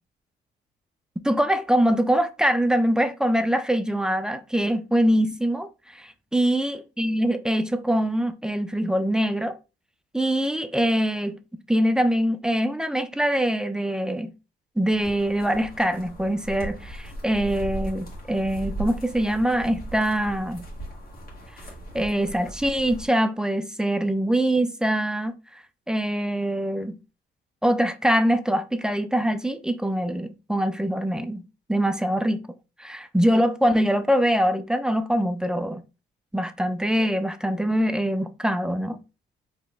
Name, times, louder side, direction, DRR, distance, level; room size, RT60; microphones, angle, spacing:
voice 1, 1.2-9.6 10.1-11.4 11.7-14.3 14.8-20.7 21.9-25.3 25.9-27.0 27.6-31.4 31.7-32.4 32.8-35.8 36.3-39.0, equal, 5° right, 0.4 m, -23 dB
sound 1, 14.9-23.1, right 1 dB, 50° left, 1.6 m, -38 dB
4.2 x 3.0 x 2.3 m
cardioid pair, 90°, 20 cm